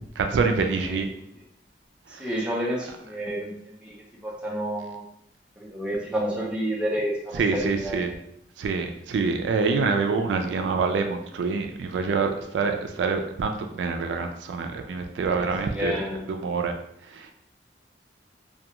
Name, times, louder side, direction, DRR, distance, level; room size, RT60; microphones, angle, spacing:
voice 1, 0.2-1.1 2.1-2.3 7.3-8.1 8.6-16.0 16.3-16.7 17.1-17.3, right 4 dB, 90° right, 5 dB, 0.3 m, -26 dB
voice 2, 2.2-3.5 3.8-3.9 4.2-5.0 5.6-8.0 15.4-16.2, equal, 5° right, -4 dB, 0.5 m, -30 dB
2.3 x 2.2 x 2.8 m, 0.74 s
head